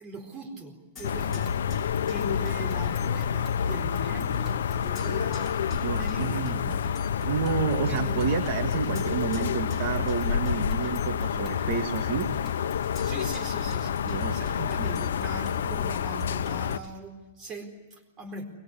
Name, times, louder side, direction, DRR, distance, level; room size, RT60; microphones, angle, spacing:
voice 1, 0.0-1.5 2.1-6.6 7.8-8.5 13.0-14.0 14.3-18.4, right 2 dB, 25° right, 6 dB, 4.3 m, -41 dB
sound 1, 1.0-16.8, left 8 dB, 85° left, 0.8 m, -28 dB
Percussion, 1.0-16.9, left 4 dB, 15° left, 6.5 m, -42 dB
voice 2, 5.7-6.8 7.2-12.3 14.0-15.0, right 7 dB, 50° right, 5 dB, 1.7 m, -30 dB
22.5 x 22.0 x 9.9 m, 1.2 s
hypercardioid pair, 150°, 0 cm